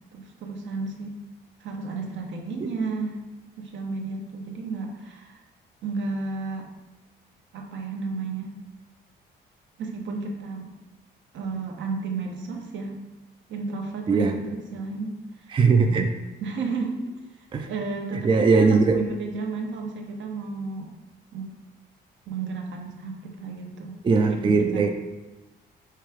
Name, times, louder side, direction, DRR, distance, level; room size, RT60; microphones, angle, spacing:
voice 1, 0.1-1.2 1.6-3.2 3.6-5.4 5.8-6.7 7.5-8.6 9.8-10.7 11.3-13.0 13.5-15.5 16.4-17.0 17.4-20.9 21.3-21.6 22.3-24.0 24.3-24.9, right 4 dB, 70° right, 2 dB, 0.8 m, -33 dB
voice 2, 15.5-16.1 17.5-17.7 18.2-19.0 24.0-24.9, right 4 dB, 25° right, 5 dB, 0.3 m, -19 dB
4.7 x 2.3 x 4.5 m, 1.1 s
cardioid pair, 90°, 20 cm